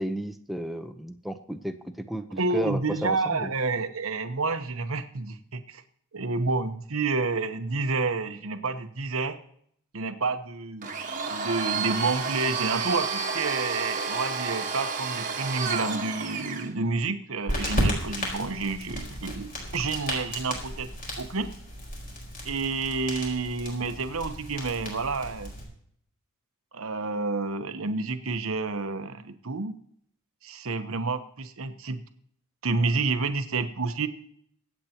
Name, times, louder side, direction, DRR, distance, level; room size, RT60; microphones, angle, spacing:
voice 1, 0.0-3.5, equal, ahead, 7 dB, 0.7 m, -33 dB
voice 2, 2.4-5.8 6.1-9.4 9.9-10.9 11.2-20.9 21.2-21.5 22.4-25.5 26.7-29.7 30.4-32.0 32.6-34.1, right 3 dB, 70° right, 9 dB, 1.0 m, -29 dB
Domestic sounds home sounds, 10.8-16.7, right 5 dB, 35° right, 1.4 m, -30 dB
sound 1, 17.5-25.6, equal, 40° left, 4.2 m, -34 dB
24.0 x 8.3 x 2.9 m, 0.67 s
head